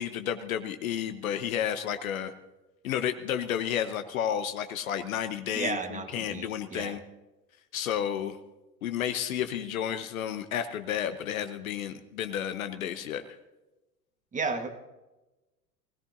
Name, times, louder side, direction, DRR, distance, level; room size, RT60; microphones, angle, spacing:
voice 1, 0.0-2.3 2.8-7.0 7.7-8.4 8.8-13.2, left 9 dB, 60° left, 9 dB, 1.1 m, -31 dB
voice 2, 5.5-6.9 14.3-14.7, right 4 dB, 15° right, 7 dB, 1.5 m, -33 dB
25.0 x 17.0 x 2.7 m, 1.1 s
figure-of-eight pair, 85°, 46 cm